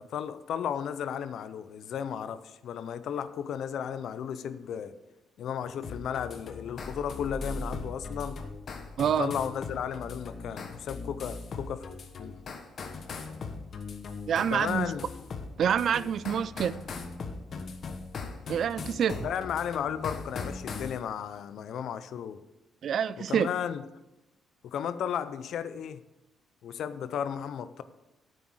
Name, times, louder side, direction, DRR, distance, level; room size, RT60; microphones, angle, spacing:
voice 1, 0.0-5.0 5.4-8.4 9.2-11.9 12.2-12.3 14.5-15.1 19.2-22.4 23.2-23.8 24.6-26.0 26.6-27.8, left 8 dB, 70° left, 0.6 m, -34 dB
sound 1, 5.8-21.0, left 4 dB, 55° left, 1.1 m, -40 dB
sound 2, 6.8-9.8, equal, 20° left, 1.5 m, -41 dB
voice 2, 9.0-9.3 14.3-14.9 15.6-16.9 18.5-19.3 22.8-23.5, right 8 dB, 60° right, 0.4 m, -27 dB
9.5 x 7.9 x 4.7 m
cardioid pair, 90°, 0 cm